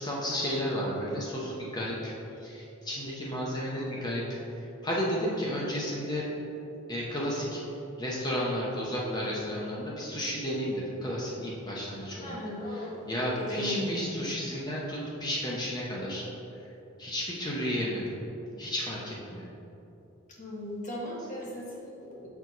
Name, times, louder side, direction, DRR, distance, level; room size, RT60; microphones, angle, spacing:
voice 1, 0.0-2.1 2.4-4.2 4.6-6.3 6.9-7.6 8.0-12.4 12.7-16.2 17.0-18.1 18.6-19.5, equal, 20° left, -5 dB, 0.8 m, -32 dB
voice 2, 12.2-13.9 20.4-22.3, left 1 dB, 35° left, -5 dB, 1.3 m, -36 dB
7.0 x 4.6 x 4.0 m, 3.0 s
head